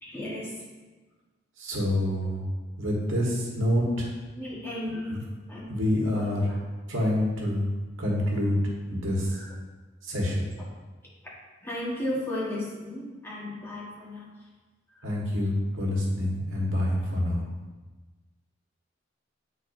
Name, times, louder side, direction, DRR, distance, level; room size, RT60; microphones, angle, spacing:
voice 1, 0.0-0.6 4.3-5.2 5.5-5.7 6.1-6.6 9.3-9.5 11.6-14.5 14.9-15.1, left 1 dB, 10° left, -7 dB, 1.5 m, -35 dB
voice 2, 1.6-2.4 2.8-4.1 5.1-5.2 5.7-6.5 6.9-7.7 8.0-8.6 8.9-9.4 10.0-10.5 15.0-17.4, left 1 dB, 85° right, -3 dB, 1.4 m, -27 dB
8.8 x 4.1 x 2.6 m, 1.3 s
head